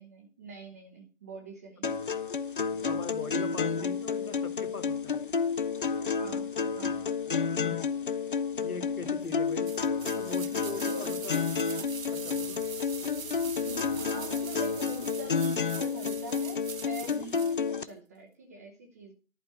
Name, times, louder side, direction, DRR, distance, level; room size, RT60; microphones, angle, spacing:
voice 1, 0.0-2.0 6.2-6.5 6.7-7.0 10.9-11.1 13.6-19.1, right 2 dB, 10° right, 3 dB, 0.6 m, -44 dB
sound 1, 1.8-17.8, left 5 dB, 40° left, 0.5 m, -30 dB
voice 2, 2.8-5.2 7.6-7.8 8.6-9.7 10.1-11.5 12.1-12.6, left 3 dB, 75° left, 8 dB, 1.9 m, -41 dB
sound 2, 9.6-17.6 17.9-18.0, right 6 dB, 60° right, 1.0 m, -43 dB
11.0 x 5.3 x 7.8 m, 0.35 s
figure-of-eight pair, 135°, 44 cm